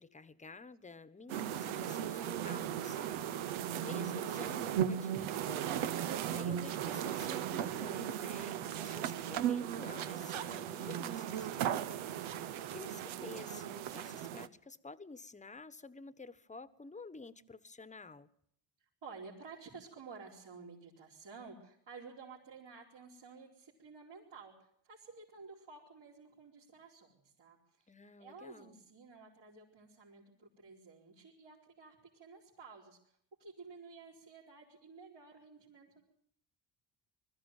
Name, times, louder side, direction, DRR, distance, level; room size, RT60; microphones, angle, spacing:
voice 1, 0.0-18.3 27.9-28.8, left 3 dB, 15° left, 15 dB, 1.1 m, -51 dB
sound 1, 1.3-14.5, right 10 dB, 90° right, 1.0 m, -37 dB
voice 2, 19.0-24.5 24.8-27.9 28.2-33.0 33.4-36.0, right 4 dB, 65° right, -6 dB, 4.8 m, -53 dB
21.0 x 14.0 x 9.1 m, 0.69 s
cardioid pair, 85°, 46 cm